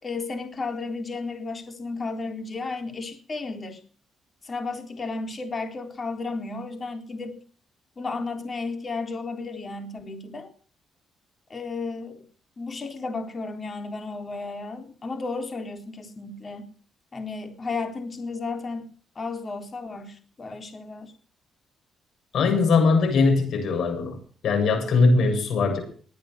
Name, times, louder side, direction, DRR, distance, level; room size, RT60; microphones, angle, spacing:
voice 1, 0.0-3.8 4.4-7.4 8.0-10.5 11.5-12.2 12.6-16.7 17.1-18.9 19.2-21.1, left 3 dB, 35° left, 5 dB, 3.8 m, -33 dB
voice 2, 22.3-24.2 24.4-25.8, left 4 dB, 70° left, 3 dB, 7.6 m, -20 dB
20.5 x 8.8 x 6.6 m, 0.44 s
cardioid pair, 90°, 0 cm